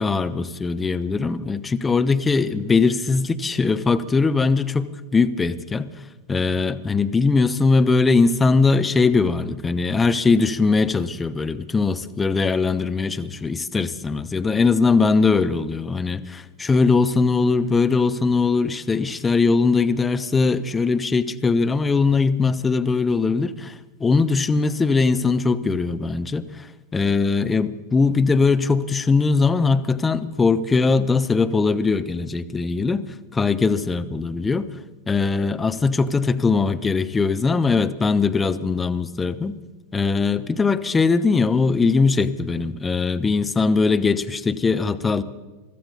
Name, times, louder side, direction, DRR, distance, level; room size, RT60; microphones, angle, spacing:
voice 1, 0.0-5.9 6.3-26.6 26.9-34.7 35.1-39.6 39.9-45.2, left 4 dB, 15° left, 10 dB, 0.7 m, -20 dB
23.5 x 13.0 x 4.1 m, 1.2 s
figure-of-eight pair, 90°, 0 cm